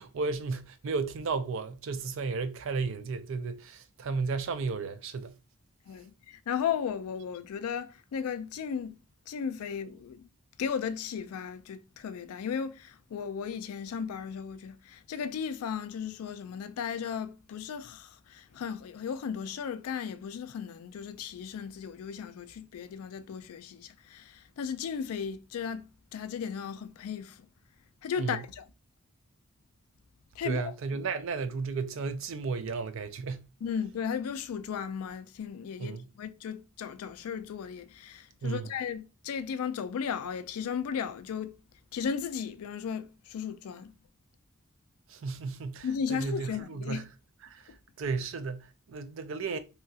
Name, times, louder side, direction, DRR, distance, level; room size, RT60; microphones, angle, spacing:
voice 1, 0.0-5.4 28.2-28.4 30.4-33.5 35.8-36.1 38.4-38.7 45.1-47.1 47.4-49.6, right 4 dB, 60° right, 0.4 m, -34 dB
voice 2, 5.9-9.0 9.3-10.3 10.6-27.5 28.0-28.6 30.4-30.6 33.6-41.5 41.9-43.9 45.8-47.0 47.7-47.8, left 7 dB, 80° left, 0.3 m, -35 dB
2.8 x 2.3 x 2.7 m
head